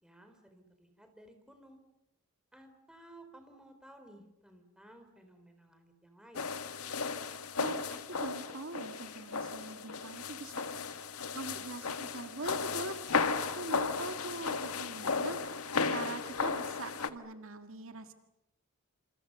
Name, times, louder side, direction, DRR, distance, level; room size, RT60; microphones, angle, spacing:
voice 1, 0.0-1.8 2.5-6.5, right 1 dB, 5° right, 6 dB, 4.1 m, -56 dB
sound 1, 6.3-17.1, left 4 dB, 75° left, 1.6 m, -35 dB
voice 2, 7.6-10.9 11.3-13.0 13.5-15.4 15.8-18.1, right 2 dB, 65° right, 7 dB, 2.0 m, -42 dB
28.0 x 28.0 x 6.8 m, 0.88 s
head